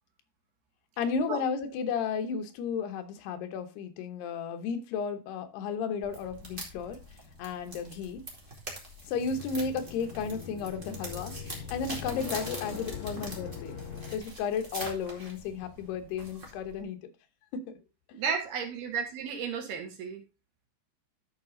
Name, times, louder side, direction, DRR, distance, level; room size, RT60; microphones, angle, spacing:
voice 1, 1.0-7.0 7.4-8.2 9.1-11.3 11.7-13.8 14.1-17.0 17.5-17.8 18.1-18.2, left 6 dB, 80° left, 3.0 m, -33 dB
sound 1, 6.0-16.8, right 1 dB, 20° right, 1.6 m, -44 dB
sound 2, 9.1-14.2, left 6 dB, 65° left, 2.0 m, -41 dB
voice 2, 18.1-20.2, right 6 dB, 70° right, 3.8 m, -33 dB
12.5 x 4.9 x 3.8 m
omnidirectional pair, 4.7 m